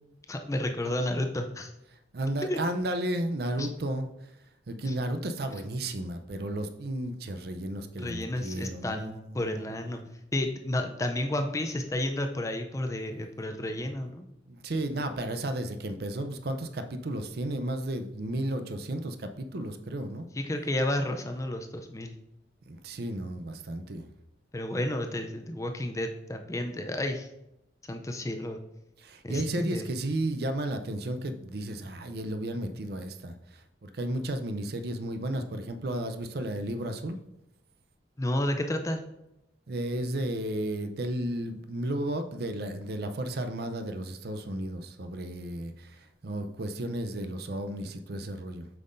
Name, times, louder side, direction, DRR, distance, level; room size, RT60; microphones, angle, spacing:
voice 1, 0.3-1.7 2.4-2.6 3.6-3.7 4.9-5.0 8.0-10.0 10.3-14.3 20.3-22.1 24.5-27.3 27.9-28.6 29.2-29.9 38.2-39.0, left 1 dB, 15° left, 5 dB, 0.4 m, -31 dB
voice 2, 2.1-4.1 4.7-9.6 14.5-20.3 22.7-24.1 29.0-37.2 39.7-48.7, right 1 dB, 55° right, 8 dB, 0.5 m, -33 dB
7.7 x 5.5 x 2.6 m, 0.86 s
head